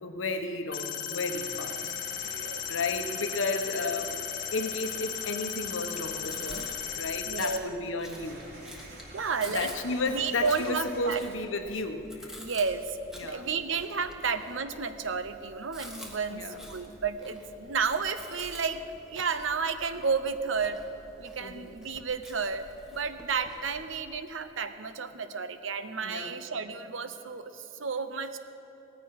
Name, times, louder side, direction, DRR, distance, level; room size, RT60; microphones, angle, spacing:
voice 1, 0.0-4.2 4.5-8.4 9.5-12.4 13.2-13.4 16.3-16.6 21.4-21.7 26.0-26.4, left 3 dB, 90° left, 6 dB, 1.1 m, -33 dB
sound 1, 0.7-7.6, left 9 dB, 45° left, 0.6 m, -36 dB
sound 2, 1.2-7.0 8.1-11.7, right 1 dB, 55° right, 3.6 m, -48 dB
voice 2, 2.2-2.7 7.2-7.7 9.1-9.7 10.1-11.2 12.4-13.0 13.2-18.8 19.1-20.8 21.2-28.4, right 5 dB, 85° right, 11 dB, 0.8 m, -32 dB
Chewing mastication, 5.9-24.0, equal, 5° right, 1.2 m, -49 dB
17.5 x 14.5 x 4.8 m, 2.9 s
head